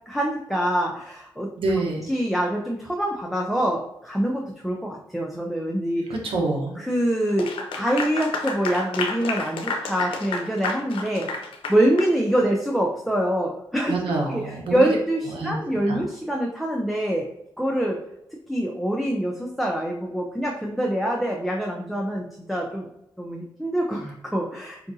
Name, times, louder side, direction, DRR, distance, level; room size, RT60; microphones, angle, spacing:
voice 1, 0.1-1.5 2.1-6.1 6.8-11.4 11.7-13.9 14.3-17.3 17.6-18.0 18.5-22.9 23.2-24.9, right 1 dB, ahead, -1 dB, 0.5 m, -25 dB
voice 2, 1.6-2.0 6.1-6.8 13.9-14.8 15.3-15.6 15.9-16.0, right 2 dB, 80° right, 0 dB, 0.9 m, -26 dB
Clapping / Applause, 7.3-12.1, left 4 dB, 80° left, 0.5 m, -30 dB
4.6 x 2.5 x 2.6 m, 0.84 s
cardioid pair, 70°, 9 cm